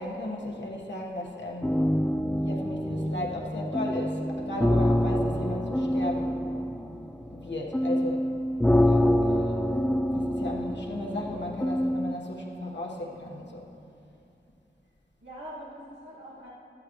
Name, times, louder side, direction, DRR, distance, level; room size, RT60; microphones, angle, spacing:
voice 1, 0.0-1.7 2.4-6.4 7.3-8.3 8.8-9.6 10.1-13.7, left 1 dB, 75° left, -2 dB, 1.4 m, -35 dB
sound 1, 1.6-12.1, left 1 dB, 5° left, 0.4 m, -26 dB
voice 2, 8.8-9.1 15.2-16.5, right 1 dB, 85° right, -8 dB, 1.9 m, -43 dB
13.0 x 11.5 x 3.1 m, 2.7 s
wide cardioid pair, 50°, 18 cm